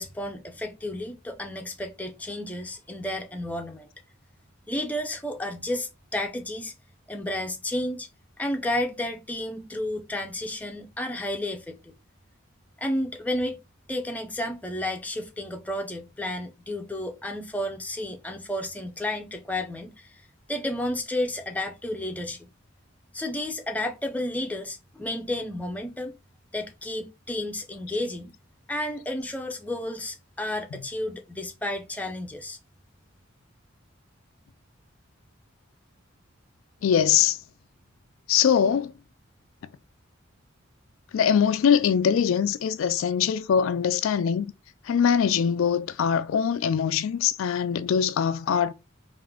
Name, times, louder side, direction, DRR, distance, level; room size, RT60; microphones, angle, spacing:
voice 1, 0.0-3.9 4.7-6.7 7.1-8.1 8.4-11.9 12.8-13.6 13.9-20.1 20.5-22.5 23.1-26.1 26.5-28.3 28.7-32.6, left 1 dB, 5° left, 0.5 m, -32 dB
voice 2, 36.8-37.4 38.3-38.9 41.1-44.5 44.9-48.7, left 8 dB, 80° left, 0.3 m, -22 dB
3.6 x 2.5 x 3.3 m
head